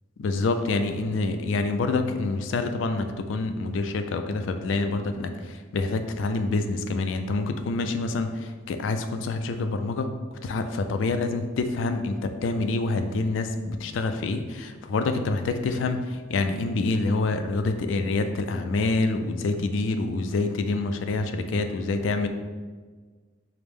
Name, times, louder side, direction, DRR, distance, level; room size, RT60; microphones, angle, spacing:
voice 1, 0.2-22.3, left 3 dB, 85° left, 8 dB, 0.3 m, -27 dB
4.8 x 2.0 x 3.4 m, 1.5 s
head